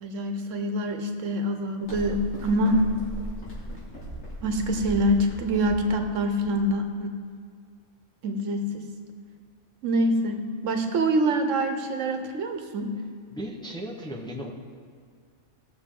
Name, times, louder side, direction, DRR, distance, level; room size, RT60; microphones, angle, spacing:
voice 1, 0.0-2.8 4.4-7.1 8.2-8.9 9.8-12.9, right 1 dB, 90° right, 5 dB, 1.3 m, -25 dB
sound 1, 1.8-6.9, equal, 65° left, 2.9 m, -38 dB
voice 2, 13.3-14.5, equal, 5° left, 0 dB, 0.7 m, -36 dB
16.0 x 6.7 x 3.7 m, 2.2 s
omnidirectional pair, 1.3 m